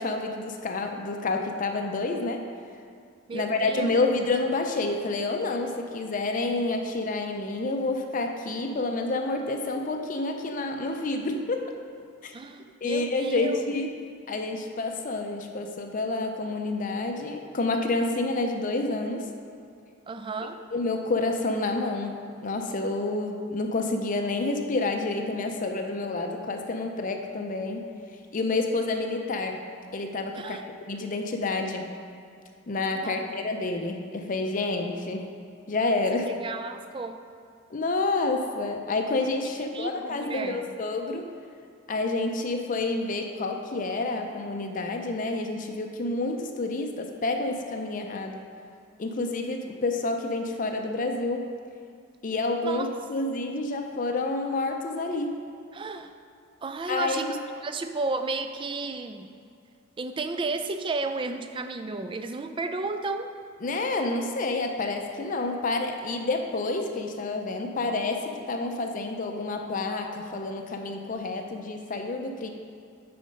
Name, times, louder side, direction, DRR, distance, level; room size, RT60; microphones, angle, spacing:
voice 1, 0.0-2.4 3.3-11.6 12.2-12.3 12.8-13.9 14.3-19.3 20.7-27.9 28.3-29.6 29.9-31.9 32.7-35.3 35.7-36.3 37.7-41.3 41.9-48.4 49.0-51.5 52.2-55.4 56.9-57.3 63.6-72.5, left 2 dB, 40° left, 4 dB, 0.5 m, -29 dB
voice 2, 3.3-4.1 12.3-13.7 20.1-20.6 30.4-30.6 32.9-33.2 36.3-37.2 39.6-40.8 52.6-52.9 55.7-56.1 56.6-57.4 57.6-59.3 60.0-63.3, right 3 dB, 25° right, 8 dB, 0.3 m, -33 dB
9.0 x 4.3 x 5.2 m, 2.3 s
head